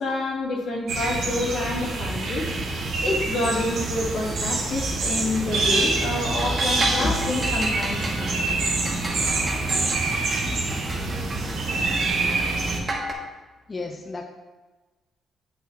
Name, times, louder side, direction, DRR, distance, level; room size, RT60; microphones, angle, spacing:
voice 1, 0.0-2.5 3.0-8.4, left 2 dB, 65° left, -5 dB, 2.4 m, -28 dB
sound 1, 0.9-12.8, right 3 dB, 70° right, 1.4 m, -26 dB
sound 2, 5.1-13.1, right 1 dB, 35° right, 1.4 m, -34 dB
sound 3, 5.5-12.9, right 1 dB, ahead, 1.4 m, -37 dB
voice 2, 13.7-14.2, left 3 dB, 30° left, 2 dB, 0.6 m, -33 dB
8.6 x 5.5 x 3.1 m, 1.3 s
cardioid pair, 90°, 0 cm